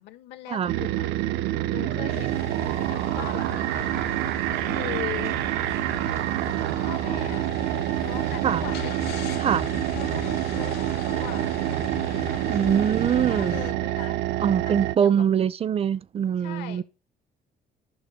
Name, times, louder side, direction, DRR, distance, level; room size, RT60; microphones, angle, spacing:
voice 1, 0.0-4.3 4.6-5.4 6.7-7.5 7.9-9.0 9.9-11.5 12.3-14.2 14.6-15.1 16.4-16.8, left 14 dB, 90° left, 1.7 m, -40 dB
sound 1, 0.7-15.0, right 15 dB, 85° right, 0.6 m, -27 dB
sound 2, 2.1-13.7, left 10 dB, 75° left, 2.4 m, -39 dB
voice 2, 12.5-13.6 14.4-16.8, right 8 dB, 35° right, 0.5 m, -23 dB
11.0 x 5.9 x 6.4 m
cardioid pair, 110°, 17 cm